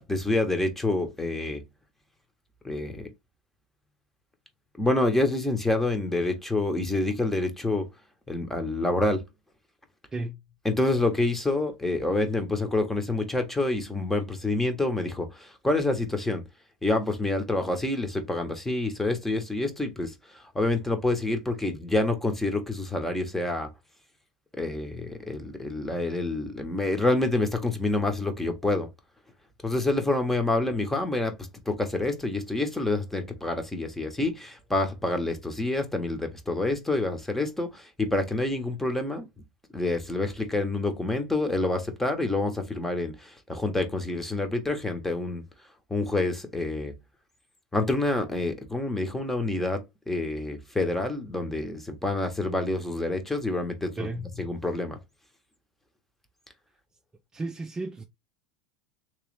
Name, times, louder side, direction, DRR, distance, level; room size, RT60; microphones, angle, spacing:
voice 1, 0.0-1.6 2.6-3.1 4.8-7.8 8.3-9.2 10.6-16.4 16.8-20.1 20.5-23.7 24.6-28.9 29.6-31.3 31.7-39.3 39.7-45.4 45.9-46.9 47.7-49.8 50.1-54.1 54.4-55.0, left 2 dB, 10° left, 1.1 m, -27 dB
voice 2, 54.0-54.3 57.3-58.0, right 2 dB, 20° right, 0.5 m, -33 dB
3.3 x 3.1 x 3.3 m
hypercardioid pair, 100°, 3 cm